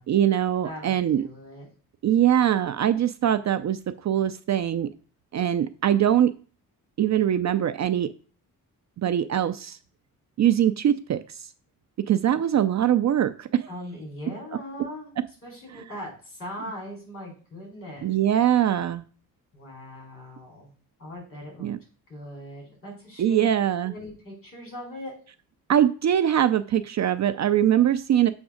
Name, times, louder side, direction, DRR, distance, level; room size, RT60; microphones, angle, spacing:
voice 1, 0.1-1.2 2.0-4.9 5.3-6.3 7.0-8.1 9.0-9.8 10.4-11.4 12.0-13.7 18.0-19.0 21.6-21.8 23.2-23.9 25.7-28.3, right 10 dB, 50° right, 12 dB, 0.4 m, -22 dB
voice 2, 0.6-1.7 13.7-15.1 15.4-18.2 19.5-20.7 21.0-21.7 22.1-23.5 23.8-25.2, left 1 dB, 35° left, 0 dB, 4.2 m, -40 dB
7.1 x 3.5 x 6.2 m, 0.39 s
wide cardioid pair, 135°, 36 cm